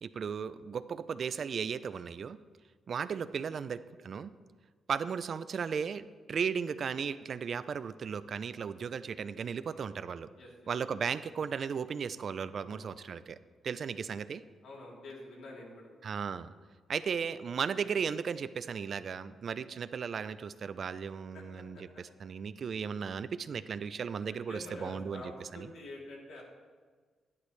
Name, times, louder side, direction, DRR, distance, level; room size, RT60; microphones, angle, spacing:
voice 1, 0.0-2.4 2.9-4.3 4.9-10.3 10.7-13.4 13.6-14.4 16.0-16.5 16.9-25.7, right 6 dB, 45° right, 14 dB, 0.3 m, -36 dB
voice 2, 12.5-13.0 14.6-15.8 21.3-21.8 24.3-26.4, left 1 dB, 75° left, -3 dB, 3.0 m, -47 dB
12.0 x 11.0 x 3.2 m, 1.5 s
wide cardioid pair, 160°, 0 cm